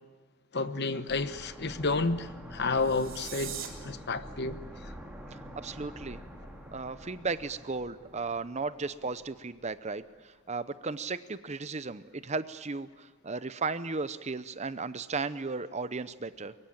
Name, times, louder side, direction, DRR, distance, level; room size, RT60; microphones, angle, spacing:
voice 1, 0.5-3.6 3.8-4.6, left 3 dB, 50° left, 11 dB, 1.1 m, -30 dB
sound 1, 1.1-9.8 10.1-10.2, equal, 5° right, 2.9 m, -47 dB
sound 2, 2.7-3.7, right 10 dB, 60° right, 3.5 m, -40 dB
voice 2, 5.3-6.2 6.7-16.6, right 4 dB, 30° right, 13 dB, 0.7 m, -35 dB
24.0 x 22.5 x 8.8 m, 1.4 s
head